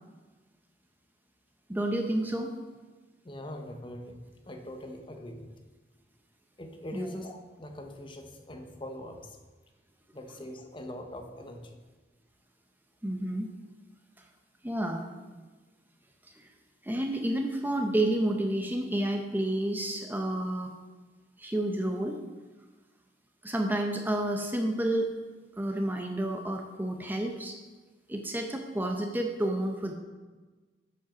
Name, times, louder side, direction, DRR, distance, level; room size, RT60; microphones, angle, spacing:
voice 1, 1.7-2.5 6.9-7.1 13.0-13.5 14.6-15.1 16.4-16.5 16.8-20.7 21.4-22.2 23.4-25.1 25.6-27.6 28.1-29.9, right 1 dB, 10° right, 3 dB, 0.6 m, -30 dB
voice 2, 3.2-5.5 6.6-9.4 10.1-11.8, left 1 dB, 30° left, 5 dB, 0.8 m, -42 dB
8.9 x 5.3 x 6.0 m, 1.3 s
head